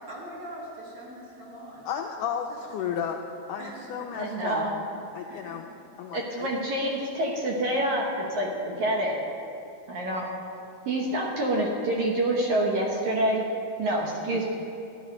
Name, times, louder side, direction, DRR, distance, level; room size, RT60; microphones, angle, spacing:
voice 1, 0.1-1.8 2.5-2.6 3.6-4.1 5.3-5.6, right 1 dB, 40° right, -5 dB, 2.5 m, -42 dB
voice 2, 1.9-3.2 3.5-4.6 5.2-5.7 6.0-6.5 14.3-14.4, left 8 dB, 85° left, 2 dB, 1.8 m, -33 dB
voice 3, 4.1-4.8 6.1-9.2 9.9-10.3 10.9-13.5 13.8-14.5, right 1 dB, 65° right, -1 dB, 2.2 m, -27 dB
12.5 x 12.0 x 5.2 m, 2.7 s
omnidirectional pair, 4.2 m